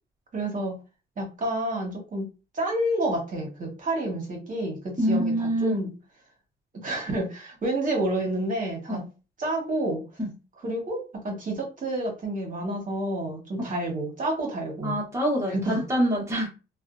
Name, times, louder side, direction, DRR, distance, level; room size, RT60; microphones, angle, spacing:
voice 1, 0.3-0.8 1.2-2.3 2.5-5.9 6.7-9.0 9.4-10.0 10.6-15.0 15.4-15.8, right 1 dB, 40° right, 0 dB, 1.2 m, -29 dB
voice 2, 5.0-5.9 8.9-9.0 10.2-10.3 14.8-16.5, equal, 15° right, -2 dB, 1.1 m, -25 dB
2.5 x 2.3 x 2.4 m, 0.31 s
cardioid pair, 90°, 20 cm